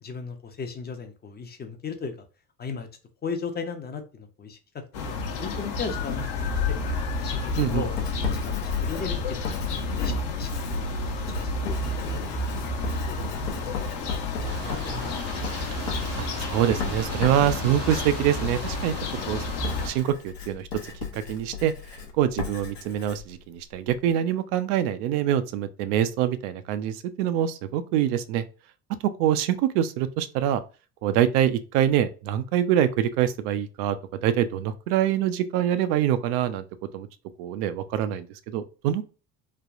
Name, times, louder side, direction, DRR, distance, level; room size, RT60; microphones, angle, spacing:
voice 1, 0.0-2.1 2.6-2.9 3.2-6.8 7.2-9.5 9.9-12.5 13.1-13.7 14.3-15.6, left 5 dB, 20° left, 0.5 m, -37 dB
sound 1, 4.9-19.9, left 3 dB, 60° left, 0.8 m, -30 dB
Writing, 7.4-24.0, left 6 dB, 90° left, 0.8 m, -37 dB
sound 2, 14.4-20.0, right 5 dB, 30° right, 0.7 m, -40 dB
voice 2, 16.2-18.9 19.3-19.4 19.8-20.7 21.1-21.7 22.1-28.4 29.2-30.6 31.0-34.0 34.2-36.6 36.9-37.1 37.4-39.0, right 10 dB, 70° right, 0.5 m, -25 dB
3.3 x 2.2 x 2.5 m
hypercardioid pair, 65°, 48 cm